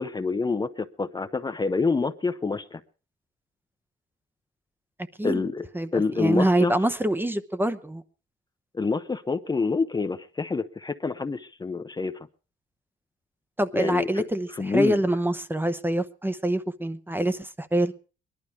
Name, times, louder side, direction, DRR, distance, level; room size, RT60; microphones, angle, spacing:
voice 1, 0.0-2.8 5.2-5.6 5.9-6.7 8.7-12.2 13.7-14.3 14.5-15.0, left 4 dB, 20° left, 0.7 m, -27 dB
voice 2, 5.7-8.0 13.6-17.9, right 1 dB, 10° right, 0.9 m, -25 dB
20.0 x 12.0 x 4.7 m
cardioid pair, 90°, 20 cm